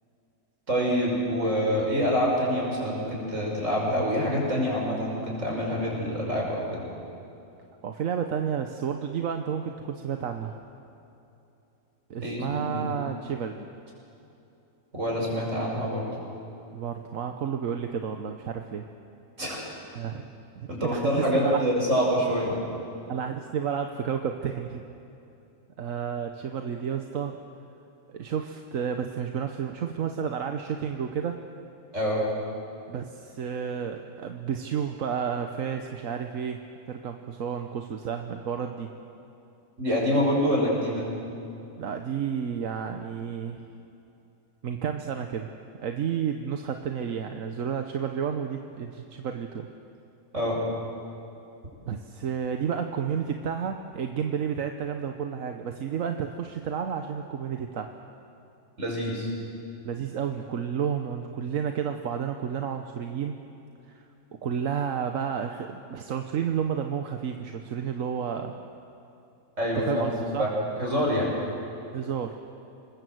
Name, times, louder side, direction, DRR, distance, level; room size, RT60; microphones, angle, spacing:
voice 1, 0.7-6.9 12.2-12.9 14.9-16.1 19.4-19.6 20.7-22.6 31.9-32.2 39.8-41.1 50.3-50.6 58.8-59.3 69.6-70.1 70.4-70.5 70.8-71.3, equal, 70° right, -2 dB, 6.4 m, -26 dB
voice 2, 7.8-10.6 12.1-13.7 16.7-18.8 19.9-21.6 23.1-24.8 25.8-27.4 28.1-31.4 32.9-36.6 36.9-38.9 41.8-43.6 44.6-45.5 45.8-49.7 51.9-57.9 59.8-63.4 63.9-64.1 64.4-68.6 69.8-70.5 71.9-72.4, right 7 dB, 90° right, 5 dB, 1.4 m, -31 dB
27.0 x 20.5 x 7.9 m, 2.9 s
omnidirectional pair, 1.4 m